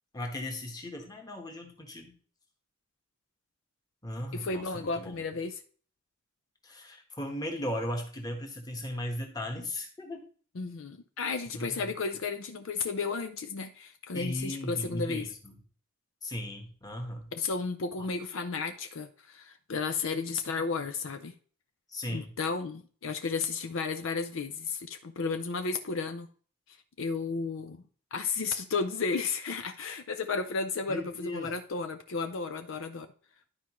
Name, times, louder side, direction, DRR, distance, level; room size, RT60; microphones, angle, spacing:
voice 1, 0.1-2.2 4.0-5.2 6.6-10.2 11.5-11.8 14.1-15.5 16.2-17.3 21.9-22.3 30.9-31.6, left 1 dB, 20° left, 3 dB, 1.3 m, -37 dB
voice 2, 4.3-5.6 10.6-15.3 17.3-21.3 22.1-26.3 26.7-27.8 28.1-33.1, left 4 dB, 65° left, 8 dB, 0.5 m, -33 dB
11.5 x 4.6 x 3.0 m, 0.43 s
head